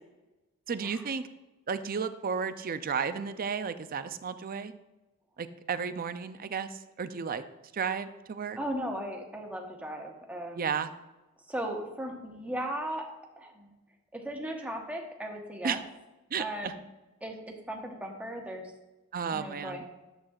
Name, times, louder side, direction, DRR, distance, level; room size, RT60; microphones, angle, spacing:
voice 1, 0.7-1.2 1.7-4.7 5.4-7.4 7.7-8.6 10.6-10.9 15.6-15.8 16.3-16.7 19.1-19.9, right 6 dB, 40° right, 11 dB, 0.5 m, -33 dB
voice 2, 8.6-10.8 11.5-13.7 14.1-15.8 16.4-16.8 17.2-18.6 19.3-19.9, right 1 dB, 5° right, 1 dB, 1.1 m, -37 dB
11.0 x 7.9 x 2.4 m, 1.1 s
head